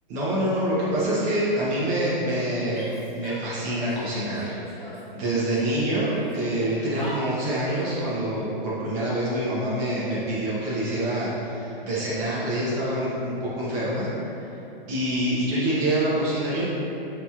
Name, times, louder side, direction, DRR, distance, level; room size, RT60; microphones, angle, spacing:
voice 1, 0.1-2.9 3.1-14.5 14.9-16.6, right 1 dB, 30° right, -8 dB, 0.7 m, -26 dB
Female speech woman speaking / Yell, 2.7-3.9 4.2-5.7 6.0-7.9, equal, 20° left, 1.1 m, -40 dB
4.0 x 2.9 x 2.3 m, 3.0 s
hypercardioid pair, 135°, 29 cm